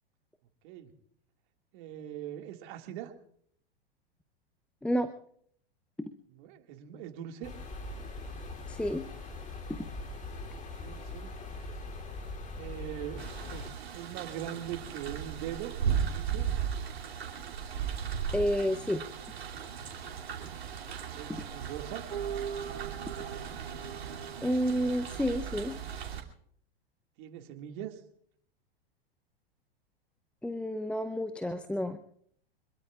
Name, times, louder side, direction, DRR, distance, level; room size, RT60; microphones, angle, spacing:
voice 1, 1.7-3.1 6.3-7.5 10.5-11.3 12.5-16.5 20.3-20.5 21.1-22.1 27.2-28.0, right 11 dB, 50° right, 5 dB, 2.1 m, -42 dB
sound 1, 7.4-13.7, left 2 dB, 25° left, 3.0 m, -41 dB
voice 2, 8.7-9.0 18.3-19.0 24.4-25.7 30.4-32.0, equal, 5° left, 9 dB, 0.6 m, -30 dB
sound 2, 13.2-26.2, right 8 dB, 80° right, 2.8 m, -36 dB
26.5 x 21.5 x 2.4 m, 0.63 s
hypercardioid pair, 105°, 31 cm